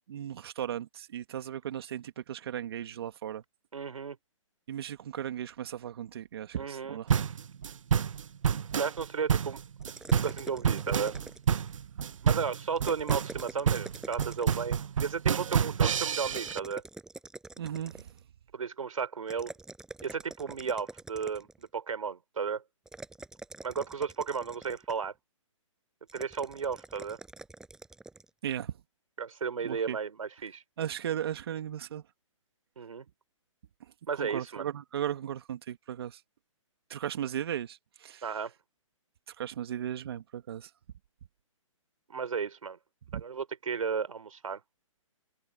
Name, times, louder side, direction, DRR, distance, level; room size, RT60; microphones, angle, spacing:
voice 1, 0.0-3.4 4.7-7.2 17.6-18.1 28.4-28.7 29.6-30.0 30.8-32.0 34.2-36.2 36.9-38.2 39.4-40.7 43.1-43.2, right 10 dB, 50° right, 2.4 m, -36 dB
voice 2, 3.7-4.2 6.6-7.0 8.8-9.6 10.2-11.2 12.2-16.8 18.5-19.5 20.0-22.6 23.6-25.1 26.1-27.2 29.2-30.6 32.8-33.0 34.1-34.7 38.2-38.5 42.1-42.8 43.2-44.6, right 6 dB, 90° right, 4.0 m, -34 dB
sound 1, 7.1-16.6, right 7 dB, 70° right, 1.0 m, -28 dB
sound 2, 9.8-11.7 12.7-14.8 16.2-18.2 19.3-21.6 22.9-25.1 26.1-28.3, right 3 dB, 5° right, 6.0 m, -46 dB
hypercardioid pair, 165°, 17 cm